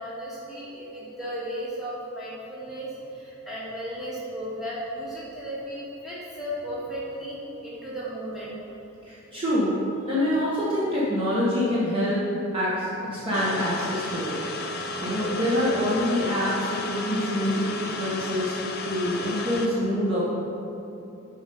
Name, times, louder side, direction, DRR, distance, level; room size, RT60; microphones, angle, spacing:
voice 1, 0.0-8.6, equal, ahead, -9 dB, 1.6 m, -35 dB
voice 2, 9.1-9.8 10.1-12.3 12.5-18.5 18.8-20.2, left 1 dB, 25° right, -9 dB, 1.1 m, -26 dB
sound 1, 13.3-19.7, left 2 dB, 45° left, 0.5 m, -33 dB
7.0 x 4.4 x 5.3 m, 2.9 s
head